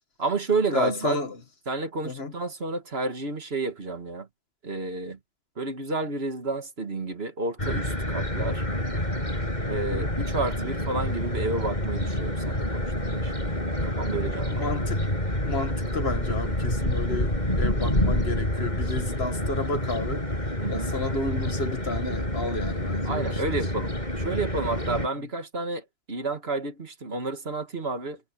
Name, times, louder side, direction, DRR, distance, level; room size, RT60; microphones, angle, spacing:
voice 1, 0.2-1.2 1.7-4.3 4.6-5.2 5.6-8.6 9.6-14.7 20.6-20.9 23.1-28.2, right 3 dB, 60° right, 2.1 m, -31 dB
voice 2, 0.7-1.4 2.0-2.3 9.7-10.1 14.5-15.0 15.5-20.2 20.7-23.3, left 2 dB, 60° left, 2.0 m, -31 dB
sound 1, 7.6-25.1, left 1 dB, 40° left, 8.1 m, -28 dB
omnidirectional pair, 1.2 m